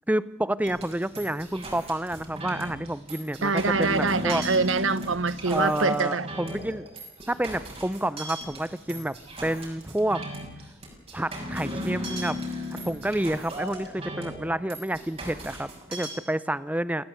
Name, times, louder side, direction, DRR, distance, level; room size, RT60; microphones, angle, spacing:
voice 1, 0.1-4.4 5.5-6.9 7.3-9.1 9.4-10.2 11.1-12.4 12.8-17.0, right 1 dB, 10° right, 0.7 m, -29 dB
sound 1, 0.6-16.1, equal, 30° right, 6.2 m, -37 dB
voice 2, 3.4-6.3, right 4 dB, 85° right, 1.1 m, -25 dB
28.0 x 17.5 x 8.2 m
head